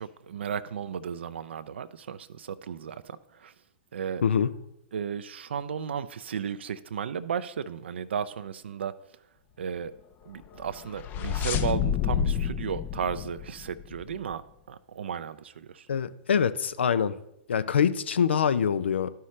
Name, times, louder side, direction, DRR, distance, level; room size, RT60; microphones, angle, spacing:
voice 1, 0.0-3.5 3.9-4.2 4.9-8.9 9.6-9.9 10.3-14.4 14.7-15.9, right 7 dB, 80° right, 12 dB, 0.4 m, -34 dB
sound 1, 10.5-14.2, left 8 dB, 30° left, 0.5 m, -29 dB
voice 2, 15.9-17.1 17.5-19.1, left 7 dB, 85° left, 14 dB, 0.5 m, -24 dB
12.0 x 5.6 x 3.2 m, 0.80 s
hypercardioid pair, 115°, 6 cm